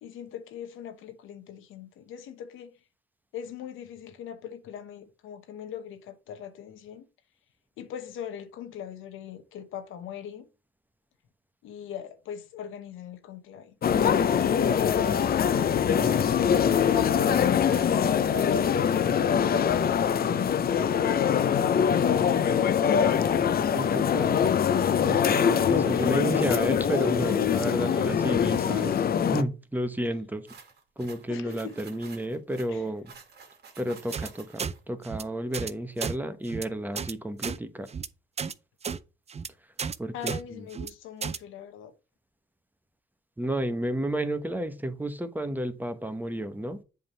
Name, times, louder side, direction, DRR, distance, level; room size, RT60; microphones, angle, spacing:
voice 1, 0.0-2.8 3.3-7.0 7.8-10.5 11.6-14.6 17.3-21.4 31.3-31.8 32.7-32.9 40.1-41.9, left 9 dB, 85° left, 1.1 m, -41 dB
sound 1, 13.8-29.4, left 8 dB, 50° left, 0.7 m, -23 dB
voice 2, 23.7-24.4 25.0-29.0 29.3-30.5 31.0-33.1 33.8-37.9 40.0-40.6 43.4-46.8, right 1 dB, 10° right, 1.1 m, -31 dB
sound 2, 30.5-34.8, right 5 dB, 55° right, 2.1 m, -50 dB
sound 3, 34.1-34.3 34.6-34.7 35.0-35.2 35.5-35.7 36.0-36.1 36.5-36.6 37.0-37.1 37.4-37.6 37.9-38.1 38.4-38.5 38.8-39.0 39.3-39.5 39.8-40.0 40.3-40.4 40.7-40.9 41.2-41.4, right 6 dB, 35° right, 0.6 m, -32 dB
7.7 x 3.7 x 5.5 m
cardioid pair, 90°, 20 cm